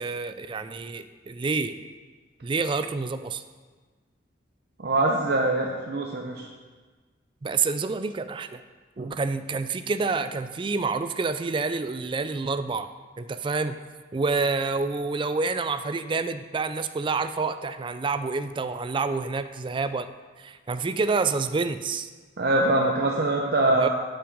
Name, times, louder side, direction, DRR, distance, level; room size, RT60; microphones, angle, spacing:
voice 1, 0.0-1.8 2.4-3.4 7.4-8.6 9.0-12.9 13.2-13.8 14.1-20.1 20.4-22.1 23.8-23.9, right 4 dB, 25° right, 11 dB, 0.3 m, -28 dB
voice 2, 4.8-6.5 9.0-9.2 22.4-23.9, right 2 dB, 60° right, 0 dB, 0.7 m, -23 dB
8.6 x 5.8 x 5.2 m, 1.4 s
head